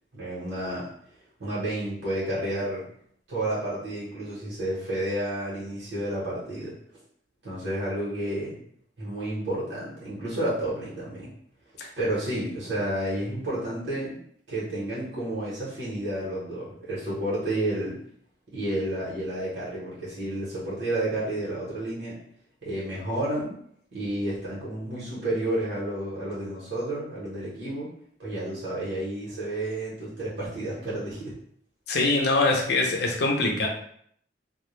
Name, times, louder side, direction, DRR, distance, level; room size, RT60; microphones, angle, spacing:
voice 1, 0.1-0.8 1.4-2.8 3.3-6.7 7.4-8.6 9.0-11.3 12.0-14.2 14.5-17.9 18.5-22.1 22.6-23.6 23.9-27.9 28.2-31.3, right 1 dB, 75° right, -8 dB, 1.0 m, -31 dB
voice 2, 31.9-33.7, left 2 dB, 65° left, 1 dB, 0.5 m, -23 dB
2.3 x 2.1 x 3.0 m, 0.64 s
head